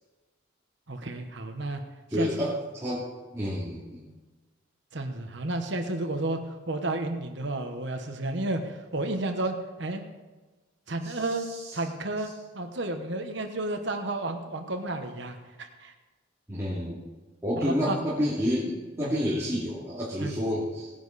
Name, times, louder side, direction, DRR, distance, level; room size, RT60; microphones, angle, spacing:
voice 1, 0.9-1.8 2.2-2.5 4.9-6.4 6.7-10.0 10.9-11.5 11.7-15.9 17.6-18.0 19.0-19.1 20.2-20.3, right 2 dB, 60° right, 5 dB, 1.2 m, -32 dB
voice 2, 2.1-3.1 3.3-4.0 11.0-11.8 16.5-17.0 17.4-20.9, equal, 15° right, -10 dB, 2.7 m, -29 dB
18.0 x 10.0 x 4.2 m, 1.2 s
head